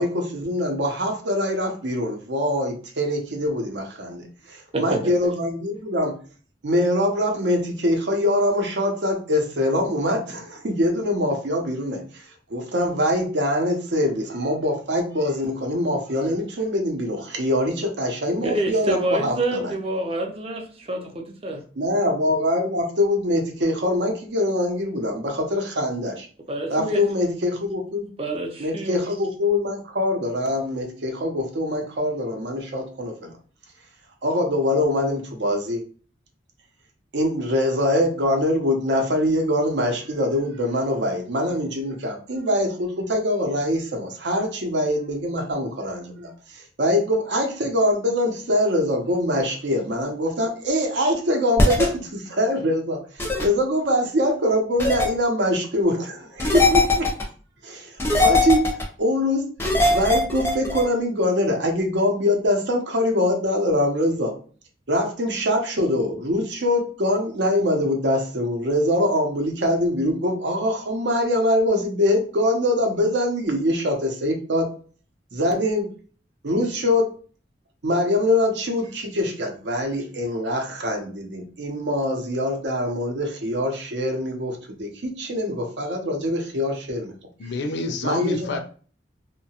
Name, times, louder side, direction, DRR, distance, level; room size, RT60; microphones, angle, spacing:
voice 1, 0.0-6.1 6.6-19.7 21.8-26.3 26.7-28.1 28.6-33.3 34.2-35.8 37.1-57.1 57.6-59.5 59.9-64.3 64.9-74.7 75.3-75.9 76.4-77.1 77.8-87.1 87.4-87.5 88.0-88.6, left 1 dB, 75° right, 0.7 m, -23 dB
voice 2, 4.7-5.1 18.4-21.6 26.5-27.2 28.2-29.0, right 1 dB, 30° right, 0.5 m, -27 dB
sound 1, 51.6-51.9 53.2-53.4 54.8-55.1 56.4-57.2 58.0-58.8 59.6-60.8, left 2 dB, 15° left, 0.5 m, -19 dB
voice 3, 87.4-88.6, left 2 dB, 75° left, 0.4 m, -28 dB
2.7 x 2.2 x 2.8 m
head